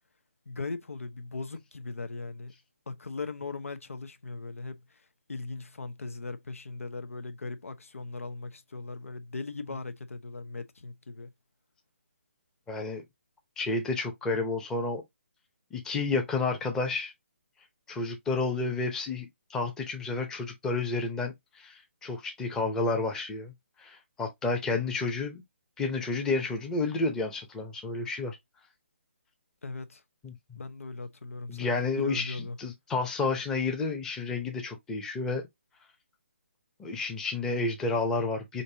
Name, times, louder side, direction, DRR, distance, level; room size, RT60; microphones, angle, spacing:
voice 1, 0.5-2.5 2.9-4.8 5.3-11.3 29.6-30.0 30.5-32.6, left 3 dB, 90° left, 0.7 m, -39 dB
voice 2, 12.7-13.0 13.6-15.0 15.7-17.1 17.9-23.5 23.8-25.4 25.8-28.4 30.2-30.6 31.5-35.4 36.8-38.6, left 3 dB, 5° left, 0.7 m, -31 dB
5.3 x 2.6 x 2.7 m
hypercardioid pair, 160°, 7 cm